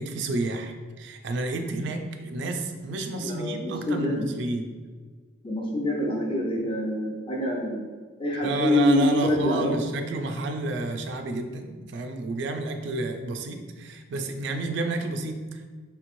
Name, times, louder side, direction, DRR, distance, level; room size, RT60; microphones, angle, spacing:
voice 1, 0.0-4.6 8.4-15.7, right 2 dB, 60° right, 5 dB, 0.3 m, -30 dB
voice 2, 3.2-4.3 5.4-7.9 8.2-9.7, left 1 dB, 25° left, -2 dB, 0.6 m, -25 dB
3.3 x 3.0 x 2.5 m, 1.5 s
head